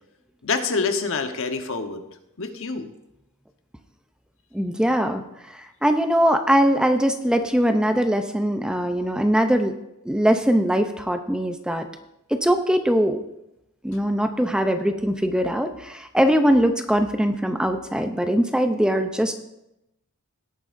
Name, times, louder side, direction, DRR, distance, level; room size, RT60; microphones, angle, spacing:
voice 1, 0.4-2.0 2.4-2.9, left 4 dB, 65° left, 6 dB, 1.1 m, -26 dB
voice 2, 4.5-9.7 10.1-11.9 12.3-13.2 13.8-19.3, equal, 5° right, 7 dB, 0.5 m, -21 dB
17.5 x 8.8 x 2.6 m, 0.87 s
head